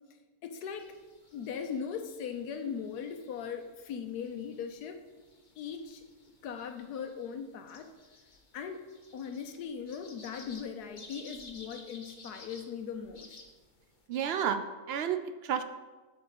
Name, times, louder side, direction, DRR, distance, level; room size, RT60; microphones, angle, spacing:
voice 1, 0.4-0.9 1.3-5.0 5.6-6.0 6.4-7.9 8.5-13.4, left 7 dB, 85° left, 6 dB, 1.3 m, -39 dB
sound 1, 0.7-14.1, left 2 dB, 35° left, 1.0 m, -55 dB
voice 2, 14.1-15.6, right 8 dB, 70° right, 9 dB, 0.6 m, -31 dB
8.1 x 4.9 x 7.3 m, 1.3 s
omnidirectional pair, 1.6 m